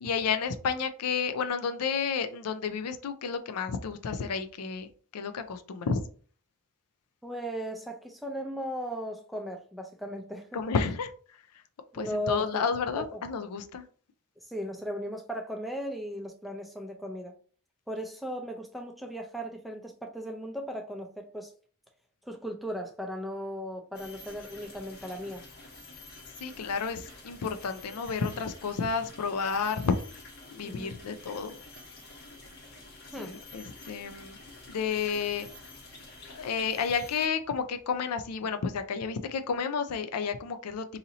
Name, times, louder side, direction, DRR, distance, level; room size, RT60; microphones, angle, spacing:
voice 1, 0.0-4.9 5.1-6.0 10.5-11.1 11.9-13.8 26.4-30.1 30.5-31.5 33.2-34.4 34.7-35.5 36.3-40.8, left 5 dB, 90° left, 9 dB, 0.4 m, -31 dB
voice 2, 7.2-10.7 11.9-12.6 12.9-13.2 14.4-17.4 17.9-21.5 22.2-25.4 30.6-31.0 33.1-33.3, equal, ahead, 2 dB, 0.4 m, -37 dB
sound 1, 23.9-37.3, left 2 dB, 45° left, 0.9 m, -49 dB
2.8 x 2.7 x 3.9 m, 0.43 s
head